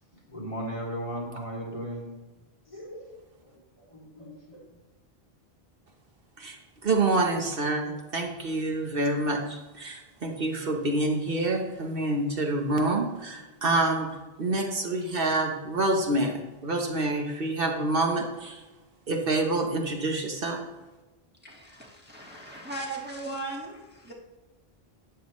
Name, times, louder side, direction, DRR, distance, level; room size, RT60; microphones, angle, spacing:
voice 1, 0.3-2.1 2.7-4.6, equal, 30° left, -3 dB, 2.9 m, -37 dB
voice 2, 6.8-14.1 14.4-18.6 19.1-20.6, right 2 dB, 65° right, 2 dB, 1.3 m, -27 dB
voice 3, 21.4-24.1, right 2 dB, 10° right, -3 dB, 1.7 m, -38 dB
13.0 x 8.9 x 3.1 m, 1.1 s
omnidirectional pair, 1.0 m